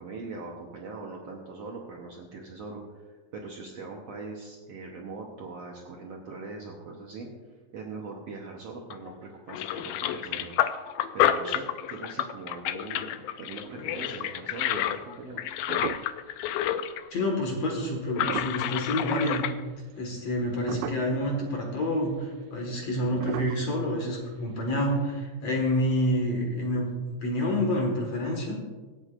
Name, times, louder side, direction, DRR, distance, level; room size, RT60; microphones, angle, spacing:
voice 1, 0.0-2.8 3.3-7.3 7.7-10.5 11.1-15.4, right 3 dB, 65° right, -1 dB, 1.7 m, -41 dB
sound 1, 8.9-9.1 9.5-17.1 17.3-17.4 18.1-19.5, left 12 dB, 80° left, 2.0 m, -29 dB
sound 2, 13.6-14.3 14.8-14.9 15.3-16.4 16.8-17.0 18.0-19.5 19.9-20.3 20.7-21.3 21.8-21.9 22.0-22.2 23.1-24.7 25.0-25.1, right 10 dB, 85° right, 2.3 m, -38 dB
voice 2, 17.1-19.5 20.0-28.6, left 1 dB, 50° left, 0 dB, 2.6 m, -28 dB
24.5 x 8.2 x 2.5 m, 1.3 s
omnidirectional pair, 4.0 m